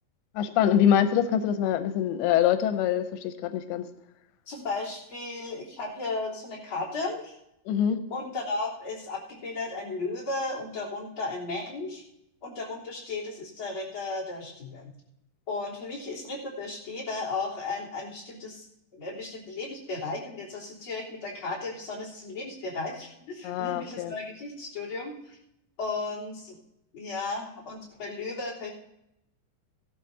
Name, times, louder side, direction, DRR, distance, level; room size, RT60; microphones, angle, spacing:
voice 1, 0.4-3.9 7.7-8.0 23.4-24.1, left 9 dB, 90° left, 9 dB, 2.7 m, -24 dB
voice 2, 4.5-7.3 8.1-12.0 12.4-14.9 15.5-18.7 18.9-25.4 25.8-26.6 26.9-28.7, left 3 dB, 35° left, -7 dB, 4.0 m, -35 dB
16.0 x 12.0 x 2.7 m, 0.82 s
omnidirectional pair, 4.5 m